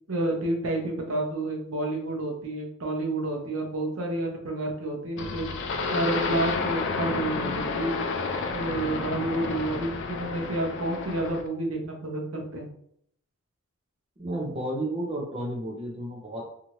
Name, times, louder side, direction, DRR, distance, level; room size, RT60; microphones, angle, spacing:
voice 1, 0.1-5.5 5.9-8.1 8.5-12.7, right 2 dB, 70° right, 0 dB, 0.8 m, -30 dB
sound 1, 5.2-11.5, left 4 dB, 60° left, 0.4 m, -30 dB
voice 2, 14.2-16.5, right 1 dB, 30° right, -2 dB, 0.6 m, -32 dB
2.7 x 2.4 x 3.0 m, 0.69 s
head